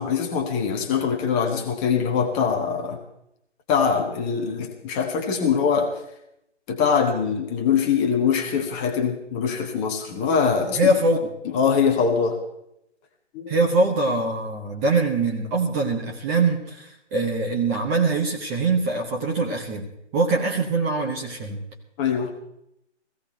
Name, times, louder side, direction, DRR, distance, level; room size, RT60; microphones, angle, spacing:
voice 1, 0.0-3.0 3.7-5.9 6.7-10.9 11.5-12.4 13.3-13.5 22.0-22.3, left 6 dB, 15° left, 3 dB, 1.0 m, -23 dB
voice 2, 10.8-11.2 13.5-21.6, right 2 dB, 10° right, 0 dB, 0.9 m, -23 dB
16.5 x 16.0 x 4.4 m, 0.80 s
figure-of-eight pair, 145°, 35 cm